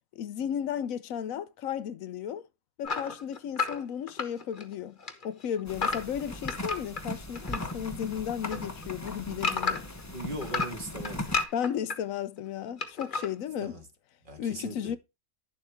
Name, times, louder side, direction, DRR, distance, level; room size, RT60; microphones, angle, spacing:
voice 1, 0.2-2.4 2.8-5.0 5.2-9.8 11.5-13.7 14.4-15.0, left 9 dB, 75° left, 1.0 m, -34 dB
sound 1, 2.8-4.7 5.0-7.7 8.1-10.0 10.4-12.0 12.8-13.3, left 4 dB, 40° left, 1.3 m, -32 dB
sound 2, 5.7-11.4, left 1 dB, 15° left, 0.8 m, -39 dB
voice 2, 10.1-11.4 13.6-13.9 14.2-14.9, right 1 dB, 40° right, 1.8 m, -39 dB
10.5 x 7.2 x 3.5 m
omnidirectional pair, 1.4 m